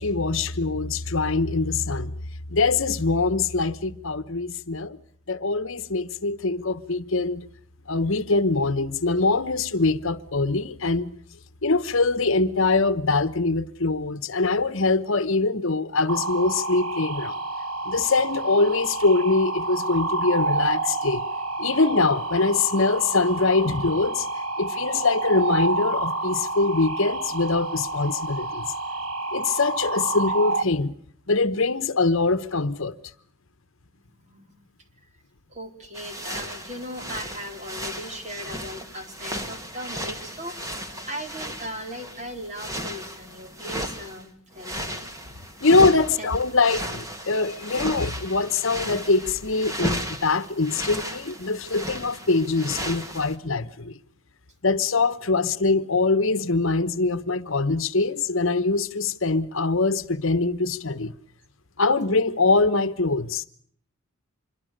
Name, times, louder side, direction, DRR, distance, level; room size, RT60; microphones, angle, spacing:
voice 1, 0.0-2.1 2.5-5.0 5.3-7.5 7.9-11.1 11.6-17.4 17.9-21.2 21.6-24.3 24.6-28.7 29.3-30.9 31.3-32.9 45.6-54.0 54.6-61.1 61.8-63.5, left 3 dB, 65° left, 1.1 m, -23 dB
sound 1, 16.1-30.6, right 2 dB, 80° right, 1.6 m, -29 dB
voice 2, 34.1-34.7 35.5-45.1 46.2-46.4, equal, 35° right, 3.7 m, -38 dB
sound 2, 35.9-44.2 44.5-53.4, equal, 15° right, 2.3 m, -35 dB
26.5 x 23.0 x 6.6 m
head